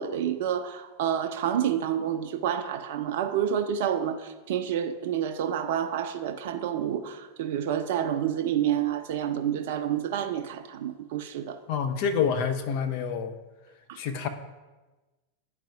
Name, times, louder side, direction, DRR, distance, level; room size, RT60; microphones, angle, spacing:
voice 1, 0.0-4.2 4.5-11.6 13.9-14.0, right 9 dB, 55° right, 9 dB, 0.5 m, -28 dB
voice 2, 11.7-13.4 14.0-14.3, left 6 dB, 45° left, 8 dB, 0.6 m, -27 dB
10.5 x 4.7 x 2.5 m, 1.2 s
figure-of-eight pair, 90°, 0 cm